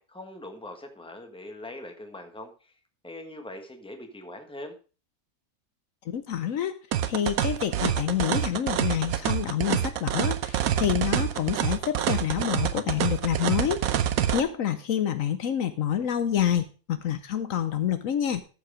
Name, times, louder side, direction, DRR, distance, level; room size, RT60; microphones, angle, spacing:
voice 1, 0.0-4.8, left 1 dB, 5° left, 5 dB, 1.3 m, -42 dB
voice 2, 6.0-6.8 7.1-13.8 14.3-18.4, left 9 dB, 70° left, 10 dB, 1.1 m, -27 dB
sound 1, 6.9-14.4, right 10 dB, 75° right, 1.2 m, -27 dB
14.0 x 4.7 x 4.9 m, 0.36 s
omnidirectional pair, 1.5 m